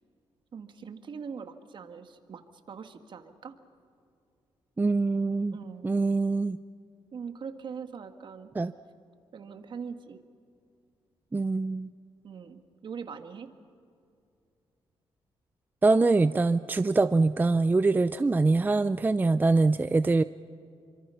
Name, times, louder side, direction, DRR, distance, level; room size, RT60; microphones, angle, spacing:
voice 1, 0.5-2.4 2.7-3.5 5.5-6.0 7.1-8.5 9.3-10.2 12.2-13.5, right 6 dB, 55° right, 8 dB, 1.7 m, -42 dB
voice 2, 4.8-5.6 5.8-6.6 8.6-8.7 11.3-11.9 15.8-20.2, right 3 dB, 20° right, 13 dB, 0.5 m, -24 dB
28.0 x 25.0 x 5.7 m, 2.5 s
cardioid pair, 110°, 10 cm